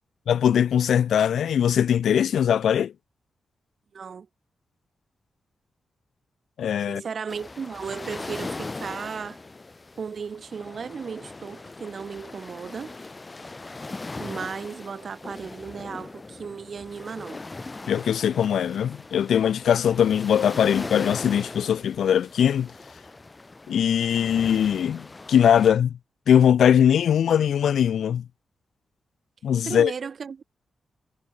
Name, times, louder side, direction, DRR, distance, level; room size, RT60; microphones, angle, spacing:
voice 1, 0.3-2.9 6.6-7.0 17.9-22.7 23.7-25.9 26.3-28.2 29.4-29.9, left 9 dB, 90° left, 0.6 m, -21 dB
voice 2, 3.9-4.3 6.9-9.4 10.0-13.0 14.2-17.4 29.6-30.4, right 6 dB, 55° right, 3.9 m, -35 dB
sound 1, 7.3-25.7, left 3 dB, 25° left, 5.6 m, -39 dB
wide cardioid pair, 105°, 0 cm